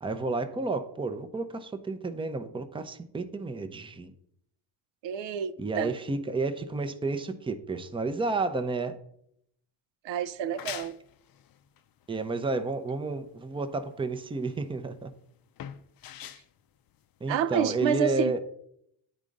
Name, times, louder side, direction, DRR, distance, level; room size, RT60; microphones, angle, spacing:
voice 1, 0.0-4.1 5.6-8.9 12.1-15.1 17.2-18.4, right 3 dB, 10° right, 0.6 m, -31 dB
voice 2, 5.0-5.9 10.0-11.0 17.3-18.4, right 8 dB, 70° right, 0.6 m, -29 dB
sound 1, 10.3-17.7, left 10 dB, 50° left, 0.6 m, -45 dB
9.0 x 3.7 x 5.2 m
cardioid pair, 95°, 46 cm